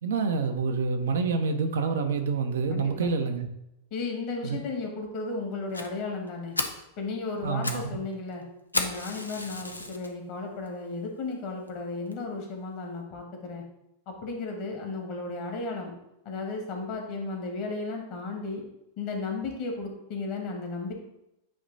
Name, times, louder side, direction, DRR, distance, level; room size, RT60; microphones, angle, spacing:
voice 1, 0.0-3.5 4.4-4.6 7.4-8.0, right 4 dB, 65° right, 6 dB, 0.7 m, -27 dB
voice 2, 2.7-3.1 3.9-6.6 7.0-8.4 8.7-13.6 14.0-15.9 16.2-18.6 19.0-20.9, left 3 dB, 45° left, 2 dB, 1.6 m, -34 dB
Fire, 5.7-5.9 6.3-6.4 6.6-6.9 7.4-7.9 8.1-8.2 8.7-10.1 10.7-10.8 11.3-11.4 11.7-11.8 12.1-12.2, left 2 dB, 85° left, 0.6 m, -32 dB
8.6 x 2.9 x 4.0 m, 0.85 s
figure-of-eight pair, 90°, 0 cm